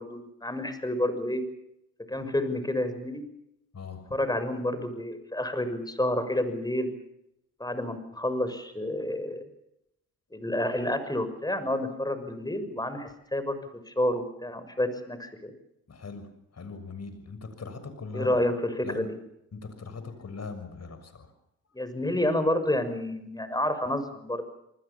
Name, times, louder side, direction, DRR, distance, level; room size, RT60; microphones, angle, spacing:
voice 1, 0.0-1.4 2.1-3.2 4.1-6.9 7.6-9.4 10.3-13.6 13.9-15.5 18.1-19.1 21.7-24.4, left 1 dB, 10° left, 10 dB, 6.4 m, -29 dB
voice 2, 3.7-4.1 15.9-16.3 16.5-18.4 18.8-19.1 19.5-21.3, left 4 dB, 50° left, 10 dB, 6.6 m, -40 dB
27.5 x 20.5 x 7.1 m, 0.81 s
supercardioid pair, 65°, 34 cm